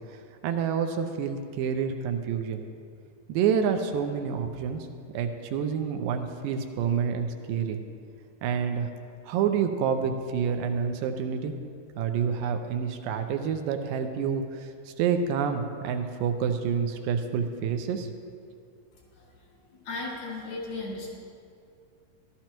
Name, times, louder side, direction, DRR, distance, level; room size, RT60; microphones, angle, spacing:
voice 1, 0.1-2.6 3.3-4.9 5.1-7.8 8.4-8.9 9.2-11.5 12.0-18.1, right 7 dB, 85° right, 6 dB, 2.4 m, -28 dB
voice 2, 19.7-21.1, left 3 dB, 90° left, -6 dB, 5.0 m, -35 dB
14.5 x 12.5 x 3.0 m, 2.4 s
omnidirectional pair, 3.9 m